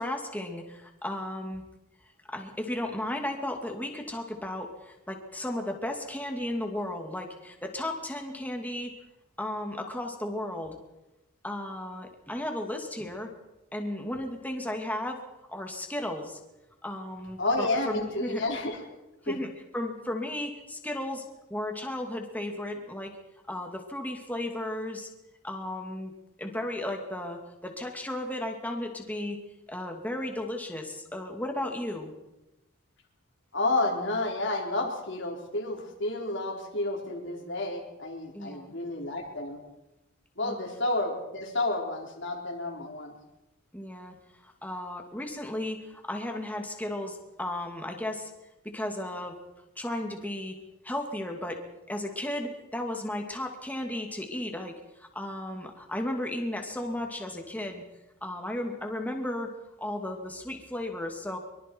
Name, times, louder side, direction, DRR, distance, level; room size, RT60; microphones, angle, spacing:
voice 1, 0.0-1.6 2.3-8.9 9.4-10.8 11.4-13.3 13.7-15.2 15.5-16.4 16.8-18.4 19.3-23.2 23.5-25.1 25.4-26.1 26.4-29.4 29.7-32.1 38.3-38.7 40.4-40.6 43.7-44.1 44.4-48.3 48.7-49.4 49.8-50.6 50.8-51.6 51.9-57.8 58.2-59.5 59.8-61.4, left 1 dB, 10° left, 3 dB, 2.5 m, -34 dB
voice 2, 17.4-18.8 19.3-19.4 33.5-39.6 40.4-43.2, left 2 dB, 60° left, 1 dB, 4.1 m, -30 dB
24.0 x 23.5 x 4.7 m, 0.97 s
head